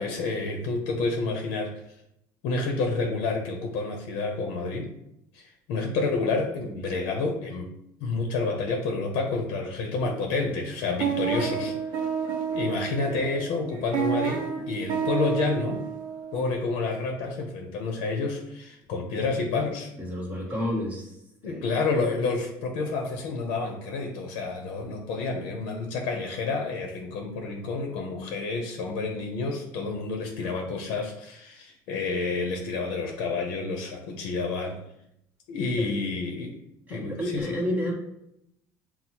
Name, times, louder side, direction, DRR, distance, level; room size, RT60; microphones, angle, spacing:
voice 1, 0.0-1.8 2.4-4.9 5.3-7.7 8.0-11.8 12.5-15.8 16.3-19.9 21.4-34.8 35.5-36.5 36.9-37.6, left 3 dB, 80° left, 2 dB, 0.6 m, -29 dB
sound 1, 10.0-10.4 10.8-16.5, right 7 dB, 60° right, 0.8 m, -30 dB
voice 2, 20.0-21.2 21.4-21.7 35.8-35.9 36.9-38.0, left 1 dB, 20° right, -3 dB, 1.1 m, -31 dB
5.9 x 2.0 x 2.8 m, 0.79 s
cardioid pair, 145°, 9 cm